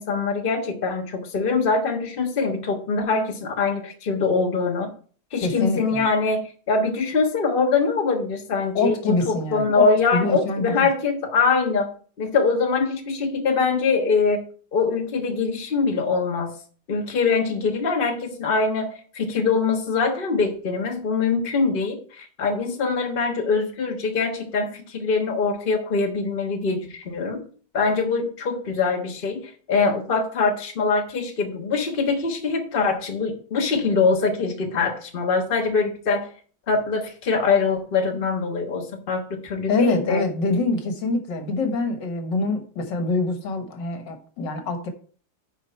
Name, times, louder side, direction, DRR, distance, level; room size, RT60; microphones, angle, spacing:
voice 1, 0.0-4.9 5.3-9.0 9.3-11.9 12.2-14.4 14.7-16.5 16.9-27.4 27.7-36.3 36.7-40.2, left 4 dB, 30° left, 2 dB, 1.3 m, -23 dB
voice 2, 5.4-6.0 8.7-10.9 39.7-44.9, left 3 dB, 75° left, 6 dB, 1.9 m, -25 dB
9.6 x 5.0 x 4.4 m, 0.43 s
omnidirectional pair, 2.0 m